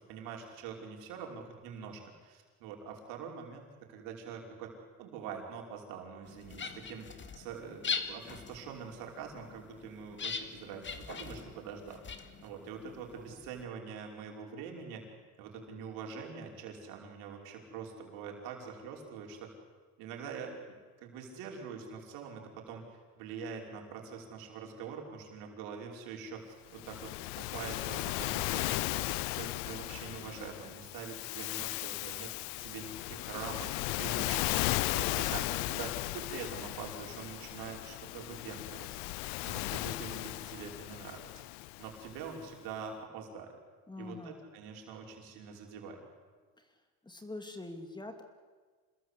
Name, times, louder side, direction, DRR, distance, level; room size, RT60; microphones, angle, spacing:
voice 1, 0.0-4.7 5.0-12.0 12.4-15.0 15.4-19.5 20.0-22.8 23.2-32.3 32.6-39.0 39.4-41.3 41.8-43.6 44.0-46.0, right 6 dB, 80° right, 1 dB, 5.5 m, -44 dB
sound 1, 6.3-13.7, left 5 dB, 30° left, 2.2 m, -42 dB
Waves surf, 26.7-42.2, left 21 dB, 85° left, 0.7 m, -36 dB
voice 2, 43.9-44.5 46.6-46.7 47.0-48.2, left 2 dB, 10° left, 6 dB, 2.7 m, -44 dB
27.5 x 20.0 x 8.4 m, 1.4 s
cardioid pair, 110°, 36 cm